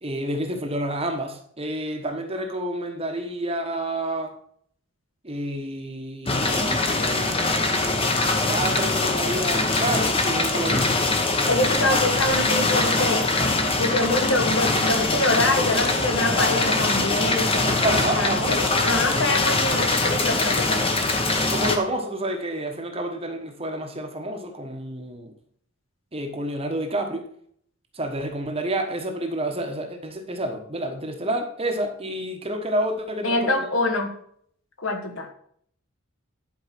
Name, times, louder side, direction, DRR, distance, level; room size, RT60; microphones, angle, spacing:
voice 1, 0.0-4.4 5.2-11.0 17.8-18.5 21.5-25.3 26.1-27.3 27.9-33.7, right 1 dB, 25° right, 4 dB, 1.1 m, -29 dB
sound 1, 6.3-21.8, left 2 dB, 25° left, 1.1 m, -23 dB
voice 2, 11.5-20.9 33.2-34.1 34.8-35.3, left 2 dB, 60° left, 4 dB, 1.8 m, -25 dB
11.0 x 4.8 x 6.0 m, 0.63 s
head